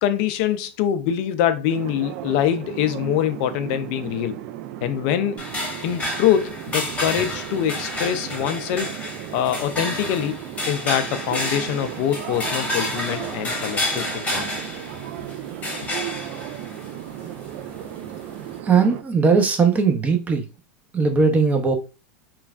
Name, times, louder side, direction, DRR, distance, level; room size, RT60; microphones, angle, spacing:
voice 1, 0.0-4.4 4.8-5.4 5.8-9.0 9.3-10.4 10.7-14.5, left 10 dB, 55° left, 0.4 m, -24 dB
sound 1, 1.7-19.0, right 12 dB, 60° right, 0.3 m, -35 dB
sound 2, 5.4-18.6, left 1 dB, 20° left, 1.0 m, -31 dB
voice 2, 18.6-20.5 20.9-21.7, right 5 dB, 20° right, 0.7 m, -19 dB
3.1 x 2.3 x 2.4 m
hypercardioid pair, 100°, 7 cm